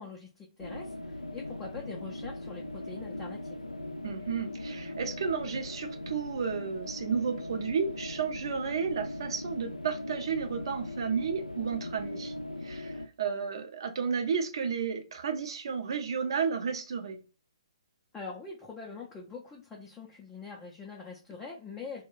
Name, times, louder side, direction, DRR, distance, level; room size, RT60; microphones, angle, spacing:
voice 1, 0.0-3.6 18.1-22.0, left 4 dB, 10° left, 0.4 m, -44 dB
sound 1, 0.6-13.1, left 1 dB, 85° left, 0.4 m, -40 dB
voice 2, 4.0-12.3 12.6-17.2, right 6 dB, 50° right, 0.5 m, -32 dB
2.2 x 2.1 x 3.7 m
figure-of-eight pair, 130°, 3 cm